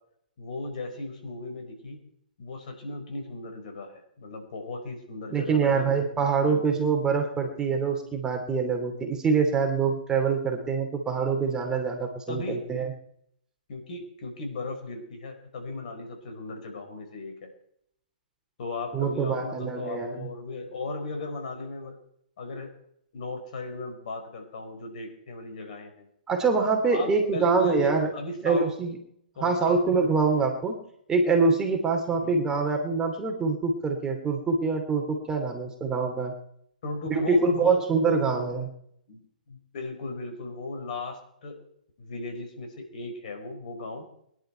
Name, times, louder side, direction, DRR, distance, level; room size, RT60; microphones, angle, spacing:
voice 1, 0.4-2.0 2.4-5.9 6.4-6.6 12.3-12.7 13.7-17.5 18.6-22.0 22.4-22.7 23.1-26.1 26.9-28.7 29.4-29.8 32.1-32.4 36.8-38.4 39.1-39.2 39.5-41.6 42.0-44.1, left 2 dB, 55° left, 4 dB, 4.9 m, -36 dB
voice 2, 5.3-12.9 18.9-20.3 26.3-28.1 28.4-29.0 29.4-30.8 31.1-36.3 37.1-38.7, right 4 dB, 15° right, 4 dB, 2.8 m, -25 dB
22.5 x 11.0 x 4.6 m, 0.70 s
hypercardioid pair, 130°, 5 cm